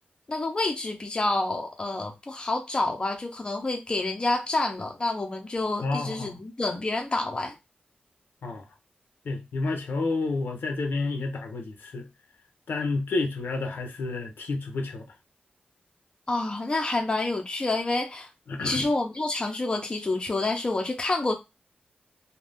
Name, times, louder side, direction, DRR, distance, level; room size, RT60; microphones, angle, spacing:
voice 1, 0.3-7.6 16.3-18.3 18.6-21.3, left 2 dB, 25° left, 0.6 m, -28 dB
voice 2, 5.8-6.4 8.4-8.6 9.2-12.1 12.7-15.1 18.5-18.8, left 3 dB, 80° left, 0.7 m, -30 dB
2.6 x 2.2 x 3.4 m
wide cardioid pair, 155°, 3 cm